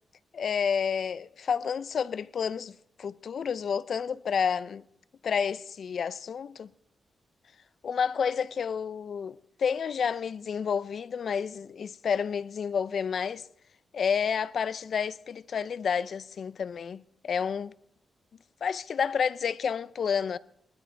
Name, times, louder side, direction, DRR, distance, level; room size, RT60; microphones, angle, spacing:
voice 1, 0.3-4.8 5.2-6.7 7.8-13.5 13.9-17.7 18.6-20.4, left 6 dB, 55° left, 0.6 m, -30 dB
20.0 x 13.5 x 4.6 m
wide cardioid pair, 140°, 0 cm